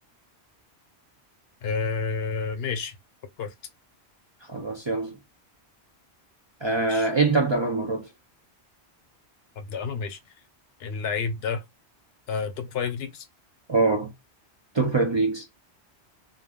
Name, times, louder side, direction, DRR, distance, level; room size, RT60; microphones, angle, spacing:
voice 1, 1.6-3.0 3.4-3.5 6.9-7.1 9.6-10.2 10.8-11.6 12.3-13.3, left 5 dB, 70° left, 0.8 m, -30 dB
voice 2, 4.5-5.2 6.6-8.1 13.7-14.1 14.7-15.4, right 3 dB, 45° right, 0.3 m, -23 dB
2.3 x 2.2 x 3.4 m
omnidirectional pair, 1.1 m